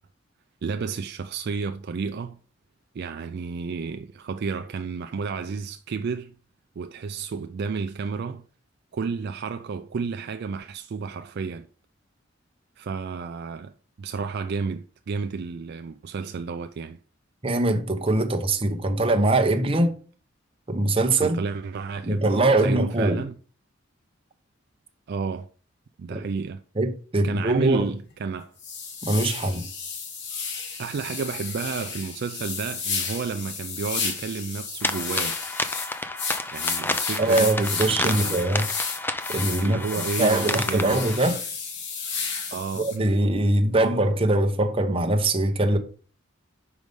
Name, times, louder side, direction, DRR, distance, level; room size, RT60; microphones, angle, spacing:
voice 1, 0.6-2.4 2.9-6.3 6.8-8.5 8.9-11.7 12.8-17.0 21.2-23.4 25.1-25.5 26.0-26.6 27.2-28.5 30.8-35.4 36.5-38.4 39.6-41.0 42.5-43.1, right 5 dB, 55° right, 0.4 m, -31 dB
voice 2, 17.4-19.9 20.7-21.4 22.0-23.2 26.1-26.2 26.8-27.9 29.0-29.6 37.2-38.6 39.3-41.4 42.8-45.8, right 2 dB, 30° right, 0.8 m, -22 dB
sound 1, 28.0-28.1 28.6-43.0, left 5 dB, 60° left, 1.2 m, -32 dB
sound 2, 34.8-41.2, left 2 dB, 10° left, 0.4 m, -31 dB
5.3 x 4.8 x 5.2 m
head